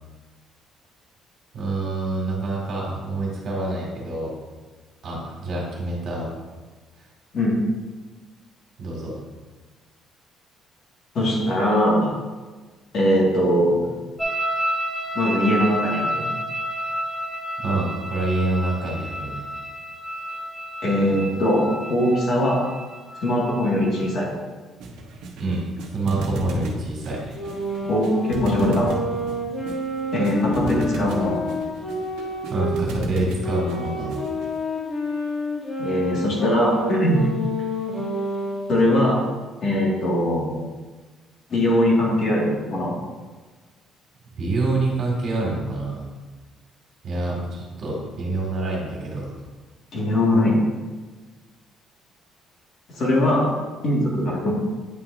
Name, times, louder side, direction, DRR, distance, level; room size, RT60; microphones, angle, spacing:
voice 1, 1.5-4.3 5.0-6.3 8.8-9.1 17.6-19.5 25.3-27.3 32.5-34.2 44.3-46.1 47.0-49.4, right 2 dB, 50° right, -2 dB, 2.0 m, -27 dB
voice 2, 11.2-12.1 12.9-13.8 15.1-16.2 20.8-22.7 23.2-24.3 27.8-28.9 30.1-31.3 35.8-37.2 38.7-39.3 39.6-40.6 41.5-42.9 49.9-50.6 52.9-53.5 53.8-54.5, left 1 dB, 45° left, -3 dB, 1.8 m, -21 dB
sound 1, 14.2-24.2, equal, ahead, 0.7 m, -30 dB
sound 2, 24.8-34.6, right 1 dB, 80° right, 0.9 m, -33 dB
sound 3, 27.3-32.8 33.4-38.8, left 1 dB, 20° left, 2.0 m, -29 dB
9.0 x 5.7 x 2.6 m, 1.3 s
cardioid pair, 145°, 0 cm